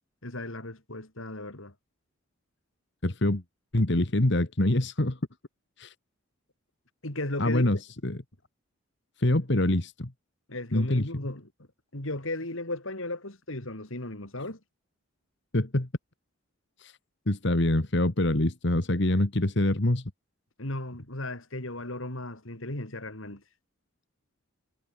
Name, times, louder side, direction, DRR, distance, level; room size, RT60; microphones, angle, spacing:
voice 1, 0.2-1.7 7.0-7.7 10.5-11.5 11.9-14.6 20.6-23.4, left 1 dB, 70° left, 3.8 m, -35 dB
voice 2, 3.0-3.4 3.7-5.2 5.8-5.9 7.4-8.2 9.2-10.1 10.7-11.1 15.5-15.9 16.8-17.0 17.3-20.0, left 1 dB, 55° left, 1.6 m, -25 dB
head